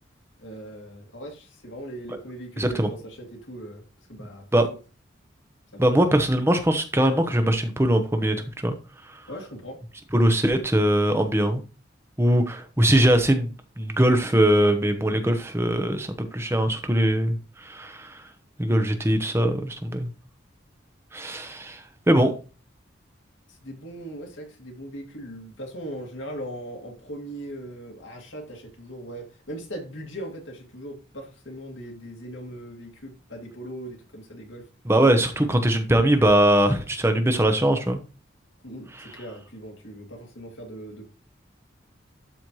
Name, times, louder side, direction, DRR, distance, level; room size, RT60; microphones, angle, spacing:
voice 1, 0.4-3.8 4.1-4.5 5.7-5.8 9.3-9.8 22.1-22.3 23.5-34.7 35.4-35.5 38.6-41.1, right 1 dB, 90° left, 2.3 m, -39 dB
voice 2, 2.6-2.9 4.2-4.7 5.8-8.4 8.6-8.7 10.1-11.6 12.2-13.5 13.8-18.2 18.6-20.1 21.1-22.3 34.8-38.0 39.0-39.1, right 1 dB, 15° right, 0.9 m, -21 dB
12.5 x 4.4 x 3.1 m
head